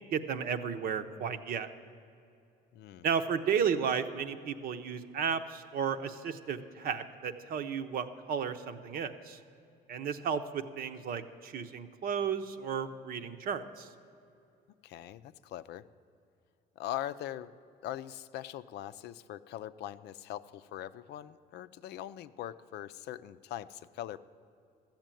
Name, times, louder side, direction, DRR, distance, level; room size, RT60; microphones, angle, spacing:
voice 1, 0.1-1.7 3.0-9.4 9.9-13.9, right 7 dB, 55° right, 9 dB, 0.9 m, -33 dB
voice 2, 2.7-3.0 14.8-15.8 16.8-17.5 17.8-24.2, left 12 dB, 70° left, 13 dB, 0.5 m, -41 dB
13.5 x 7.3 x 9.0 m, 2.6 s
cardioid pair, 115°, 18 cm